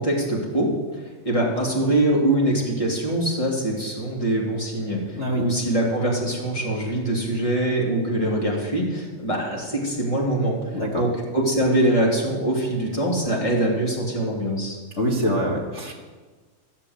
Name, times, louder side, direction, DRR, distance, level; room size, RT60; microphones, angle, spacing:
voice 1, 0.0-11.1 11.3-14.8, right 1 dB, 10° left, -3 dB, 2.5 m, -23 dB
voice 2, 10.7-11.0 15.0-15.9, equal, 70° left, -2 dB, 0.6 m, -24 dB
14.5 x 7.5 x 8.0 m, 1.4 s
omnidirectional pair, 4.0 m